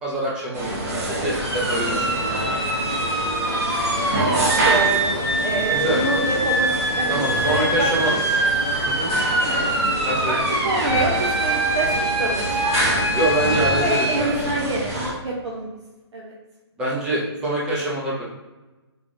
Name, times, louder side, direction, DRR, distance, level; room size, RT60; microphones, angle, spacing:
voice 1, 0.0-2.4 5.7-6.0 7.1-8.1 8.8-9.1 10.0-10.4 13.1-14.3 16.8-18.2, right 1 dB, 5° right, -6 dB, 0.4 m, -25 dB
sound 1, 0.5-15.1, right 1 dB, 35° right, 0.9 m, -27 dB
voice 2, 0.7-1.2 4.1-5.1 5.4-7.2 7.4-7.9 9.5-9.6 10.3-11.9 12.2-15.7 16.1-16.3, right 2 dB, 90° right, -3 dB, 0.7 m, -27 dB
sound 2, 1.4-14.2, right 2 dB, 55° right, 1.3 m, -24 dB
sound 3, 3.8-9.8, left 2 dB, 45° left, 0.6 m, -40 dB
3.7 x 3.2 x 2.5 m, 1.1 s
hypercardioid pair, 160°, 14 cm